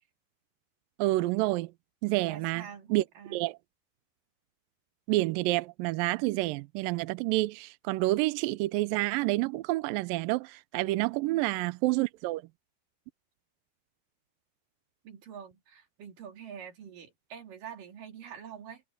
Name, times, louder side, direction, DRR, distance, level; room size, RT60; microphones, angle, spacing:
voice 1, 1.0-1.7 2.0-2.6 2.9-3.0 3.3-3.6 5.1-12.4, right 19 dB, 85° right, 2.0 m, -28 dB
voice 2, 2.2-3.5 11.3-11.6 15.0-18.8, right 8 dB, 55° right, 4.4 m, -46 dB
omnidirectional pair, 4.7 m